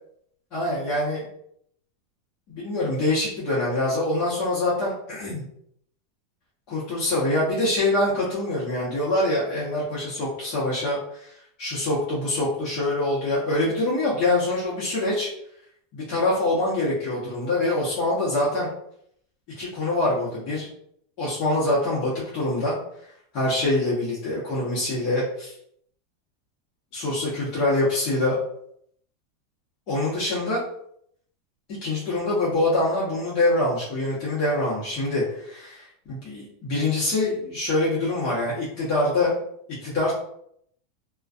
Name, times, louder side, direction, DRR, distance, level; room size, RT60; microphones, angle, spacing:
voice 1, 0.5-1.3 2.5-5.4 6.7-15.3 15.9-18.7 19.6-20.7 21.2-22.7 23.3-25.5 26.9-28.4 29.9-30.6 31.8-39.3 39.8-40.1, left 2 dB, 50° left, -7 dB, 0.9 m, -25 dB
2.5 x 2.3 x 2.4 m, 0.70 s
supercardioid pair, 135°, 0 cm